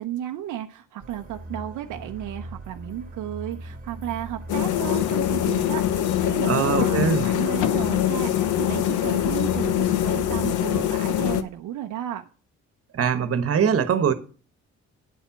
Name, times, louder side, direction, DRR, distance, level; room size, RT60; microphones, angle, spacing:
voice 1, 0.0-12.3, right 12 dB, 80° right, 0.7 m, -33 dB
sound 1, 1.0-10.9, right 2 dB, 30° right, 1.6 m, -40 dB
sound 2, 4.5-11.4, left 12 dB, 85° left, 0.8 m, -23 dB
voice 2, 6.4-7.3 12.9-14.1, right 7 dB, 50° right, 1.2 m, -22 dB
10.0 x 4.4 x 7.1 m
cardioid pair, 90°, 30 cm